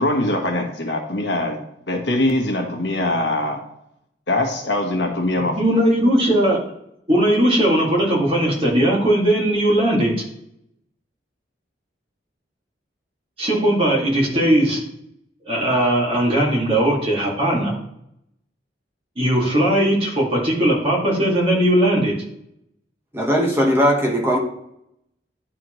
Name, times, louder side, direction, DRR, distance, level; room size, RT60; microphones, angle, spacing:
voice 1, 0.0-1.6 1.9-3.6 4.3-5.6, left 1 dB, 75° left, 2 dB, 1.4 m, -22 dB
voice 2, 5.6-6.6 7.1-10.1 13.4-14.8 15.4-17.7 19.2-22.1, right 1 dB, 30° right, -3 dB, 2.2 m, -18 dB
voice 3, 23.1-24.4, equal, 15° right, -1 dB, 1.2 m, -18 dB
10.5 x 4.2 x 3.1 m, 0.77 s
head